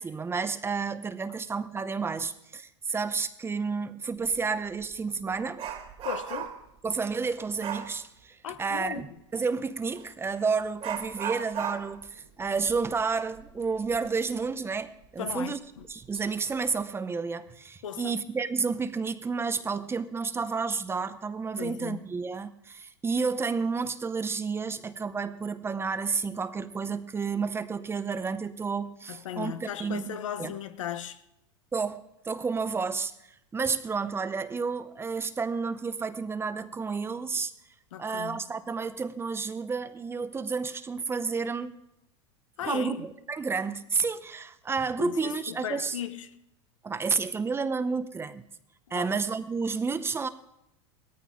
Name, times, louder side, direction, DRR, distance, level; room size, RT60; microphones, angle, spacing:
voice 1, 0.0-5.6 6.8-15.6 15.9-30.1 30.4-30.5 31.7-32.0 32.2-33.1 33.5-37.5 38.0-41.7 42.6-46.0 46.8-48.4 48.9-50.3, right 5 dB, 15° right, 0.8 m, -31 dB
Dog, 4.2-4.4 4.8-6.7 7.6-8.0 9.9-10.1 10.8-14.1 14.4-14.5 15.0-15.1 15.8-16.2 16.6-16.8, right 8 dB, 35° right, 2.1 m, -37 dB
voice 2, 6.0-6.5 8.4-9.0 15.2-15.8 17.8-18.2 21.6-22.0 29.1-31.2 37.9-38.4 42.6-43.1 45.0-46.3 48.9-49.1, left 9 dB, 90° left, 0.9 m, -36 dB
17.5 x 14.0 x 3.8 m
supercardioid pair, 115°, 16 cm